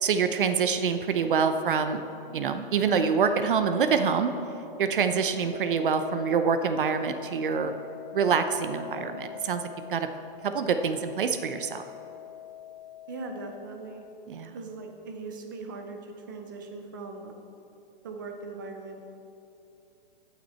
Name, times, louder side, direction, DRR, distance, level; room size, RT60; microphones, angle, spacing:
voice 1, 0.0-2.0 2.3-4.3 4.8-7.7 8.1-9.6 9.9-10.1 10.4-11.8 14.3-14.6, right 6 dB, 65° right, 9 dB, 0.7 m, -26 dB
sound 1, 5.5-14.1, left 10 dB, 50° left, 2.5 m, -44 dB
voice 2, 13.1-14.1 14.5-17.3 18.0-19.0, right 3 dB, 20° right, 4 dB, 0.6 m, -40 dB
15.0 x 6.0 x 4.2 m, 2.8 s
hypercardioid pair, 180°, 29 cm